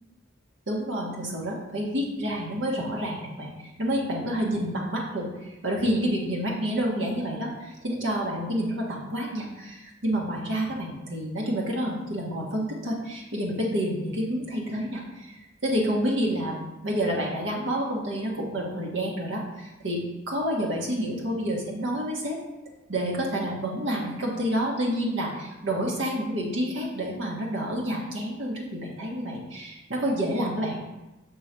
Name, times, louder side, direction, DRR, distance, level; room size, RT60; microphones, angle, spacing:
voice 1, 0.7-20.0 20.3-22.4 22.9-30.8, equal, 85° right, -2 dB, 1.4 m, -29 dB
6.7 x 4.5 x 4.5 m, 1.0 s
head